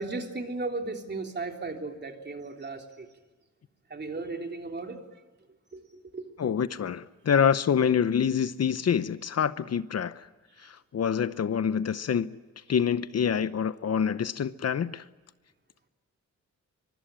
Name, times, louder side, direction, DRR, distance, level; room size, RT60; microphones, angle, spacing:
voice 1, 0.0-3.1 3.9-5.2 5.7-6.3 10.6-10.7, right 3 dB, 35° right, 3 dB, 3.5 m, -36 dB
voice 2, 6.4-10.2 10.9-12.4 12.7-15.0, left 7 dB, 60° left, 14 dB, 0.8 m, -26 dB
24.0 x 23.5 x 8.9 m, 1.3 s
wide cardioid pair, 135°, 29 cm